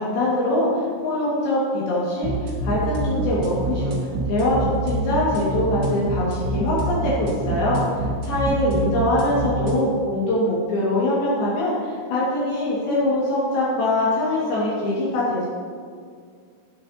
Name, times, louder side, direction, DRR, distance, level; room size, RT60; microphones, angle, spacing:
voice 1, 0.0-3.9 4.3-7.8 8.2-15.5, left 1 dB, 70° left, -7 dB, 3.8 m, -23 dB
sound 1, 2.2-9.8, right 2 dB, 55° right, 1.1 m, -26 dB
18.5 x 7.9 x 2.8 m, 2.1 s
omnidirectional pair, 4.6 m